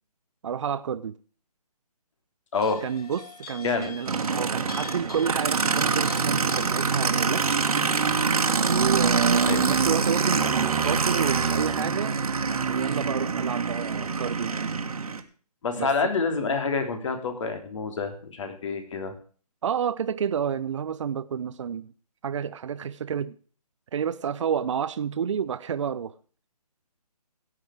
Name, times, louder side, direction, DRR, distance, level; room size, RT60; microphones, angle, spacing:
voice 1, 0.4-1.2 2.8-7.6 8.6-12.2 12.7-14.8 15.8-15.9 19.6-21.9 22.2-23.4 23.9-26.2, right 8 dB, 50° right, 0.7 m, -30 dB
sound 1, 2.5-8.1, left 5 dB, 65° left, 3.4 m, -44 dB
Aircraft, 4.1-15.2, right 5 dB, 65° right, 1.9 m, -25 dB
voice 2, 15.6-19.1, left 4 dB, 50° left, 3.4 m, -27 dB
17.0 x 7.9 x 4.9 m
figure-of-eight pair, 150°, 20 cm